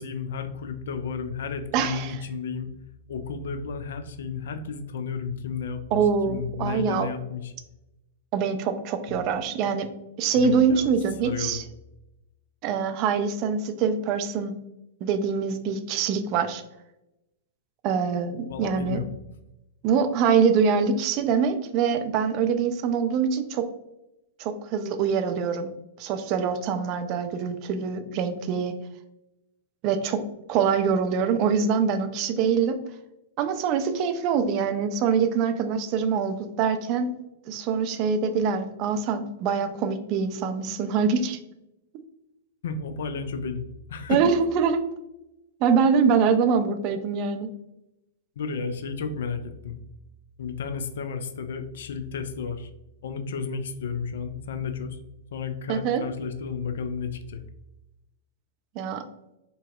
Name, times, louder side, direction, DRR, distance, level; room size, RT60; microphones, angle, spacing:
voice 1, 0.0-2.7 3.1-7.5 9.1-9.2 10.4-10.9 11.2-11.6 18.5-19.1 42.6-44.3 48.4-49.8 50.4-52.7 53.0-55.0 55.3-57.4, left 5 dB, 60° left, 8 dB, 0.3 m, -32 dB
voice 2, 1.7-2.2 5.9-7.1 8.3-9.9 10.2-11.6 12.6-14.6 15.0-16.6 17.8-19.0 19.8-23.7 24.4-25.7 26.0-28.7 29.8-30.2 30.5-32.8 33.4-37.1 37.5-41.4 41.9-42.0 44.1-44.8 45.6-47.5 55.7-56.0 58.8-59.0, right 6 dB, 40° right, 8 dB, 0.3 m, -24 dB
3.9 x 2.1 x 2.3 m, 0.91 s
figure-of-eight pair, 100°, 0 cm